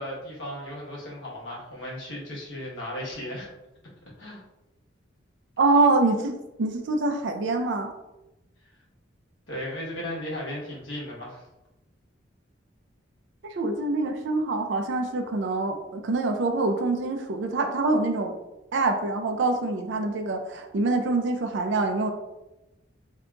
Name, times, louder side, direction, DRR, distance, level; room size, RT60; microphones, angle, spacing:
voice 1, 0.0-3.5 4.2-4.4 9.5-11.4, left 1 dB, 75° left, -5 dB, 1.1 m, -35 dB
voice 2, 5.6-7.9 13.4-18.4 18.7-22.1, right 3 dB, 70° right, 5 dB, 0.4 m, -25 dB
3.7 x 2.7 x 2.3 m, 0.97 s
head